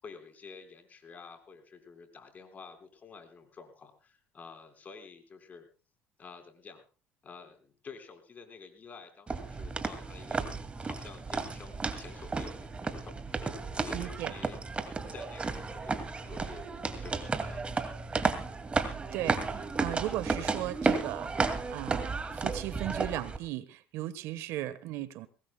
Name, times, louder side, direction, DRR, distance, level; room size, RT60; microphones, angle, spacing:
voice 1, 0.0-5.7 6.2-6.8 7.2-14.6 15.0-17.8, left 5 dB, 35° left, 6 dB, 4.4 m, -50 dB
sound 1, 9.3-23.4, right 4 dB, 25° right, 2.2 m, -33 dB
voice 2, 13.9-14.3 19.1-25.3, right 14 dB, 75° right, 15 dB, 1.2 m, -37 dB
23.5 x 19.0 x 2.2 m, 0.34 s
supercardioid pair, 95°, 5 cm